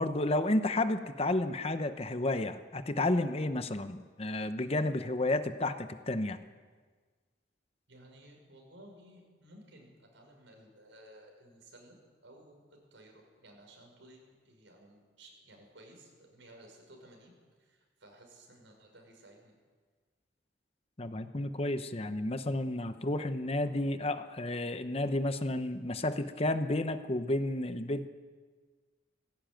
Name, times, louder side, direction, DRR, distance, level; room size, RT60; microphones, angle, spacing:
voice 1, 0.0-6.4 21.0-28.1, left 1 dB, 30° left, 10 dB, 0.9 m, -31 dB
voice 2, 7.9-12.0 12.2-17.3 17.6-19.5, right 1 dB, 80° right, 2 dB, 6.0 m, -56 dB
18.5 x 17.0 x 9.1 m, 1.5 s
head